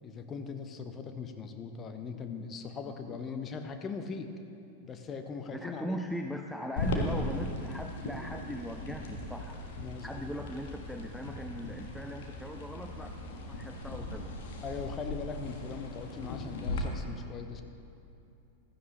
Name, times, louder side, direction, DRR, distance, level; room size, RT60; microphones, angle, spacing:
voice 1, 0.0-4.3 4.8-6.0 9.8-10.4 14.6-17.6, left 5 dB, 25° left, 6 dB, 0.9 m, -40 dB
voice 2, 2.8-3.4 5.5-9.6 10.0-14.3, equal, ahead, 4 dB, 0.5 m, -40 dB
sound 1, 6.8-16.8, left 2 dB, 55° left, 1.5 m, -38 dB
15.5 x 13.0 x 3.1 m, 2.7 s
figure-of-eight pair, 90°, 0 cm